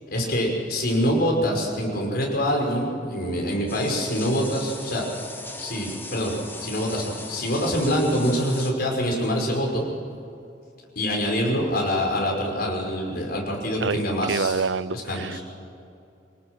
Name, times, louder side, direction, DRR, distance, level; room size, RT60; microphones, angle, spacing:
voice 1, 0.1-5.1 5.6-9.8 11.0-14.6 14.9-15.4, equal, 60° left, 0 dB, 5.6 m, -25 dB
sound 1, 3.7-8.7, left 2 dB, 10° left, 1.5 m, -39 dB
voice 2, 14.3-15.4, right 5 dB, 85° right, 17 dB, 0.6 m, -26 dB
25.5 x 18.5 x 6.3 m, 2.6 s
head